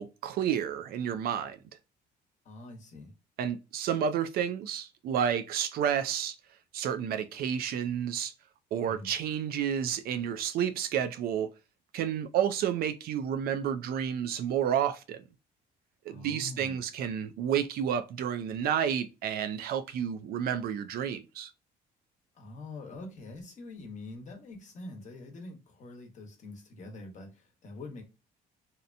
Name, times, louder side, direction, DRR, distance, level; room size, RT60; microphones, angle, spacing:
voice 1, 0.0-1.6 3.4-6.4 6.7-8.3 8.7-11.5 11.9-15.2 16.1-21.5, right 8 dB, 65° right, 0.4 m, -30 dB
voice 2, 2.4-3.1 8.9-9.1 16.1-16.8 22.3-28.0, left 2 dB, 45° left, 1.0 m, -45 dB
2.8 x 2.0 x 2.5 m
cardioid pair, 110°, 17 cm